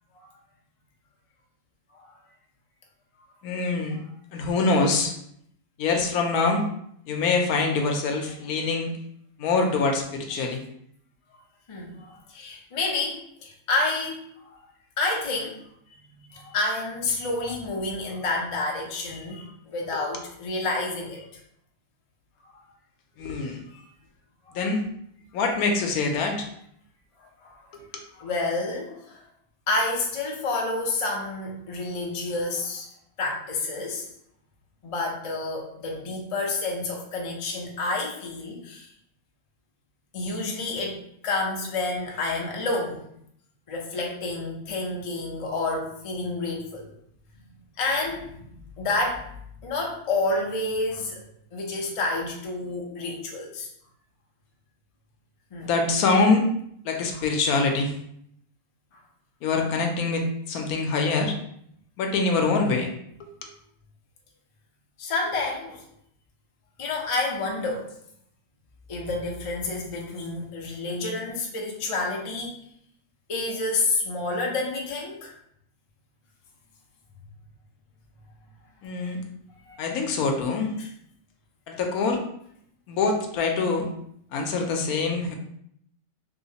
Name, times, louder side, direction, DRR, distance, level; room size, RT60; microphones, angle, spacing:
voice 1, 3.4-4.0 4.3-5.2 5.8-6.6 7.1-8.9 9.4-10.6 23.2-23.7 24.5-24.8 25.3-26.5 27.7-27.8 55.6-56.5 56.8-57.9 59.4-61.3 62.0-62.9 63.2-63.5 78.8-79.2 79.8-80.7 81.7-82.2 82.9-83.9 84.3-85.3, left 3 dB, 80° left, 3 dB, 1.1 m, -24 dB
voice 2, 11.7-14.2 14.5-14.6 15.0-15.6 16.3-21.3 23.7-23.8 24.5-24.6 27.2-27.6 28.1-29.2 29.7-32.9 33.2-34.1 34.8-38.9 40.1-41.0 41.2-43.0 43.7-46.9 47.8-49.3 49.6-51.2 51.5-53.7 55.5-55.7 58.9-59.0 65.0-65.8 66.8-67.9 68.9-72.5 73.3-75.3 79.7-79.8 80.8-80.9, left 2 dB, 60° left, -1 dB, 0.3 m, -29 dB
3.1 x 3.0 x 2.8 m, 0.70 s
omnidirectional pair, 1.6 m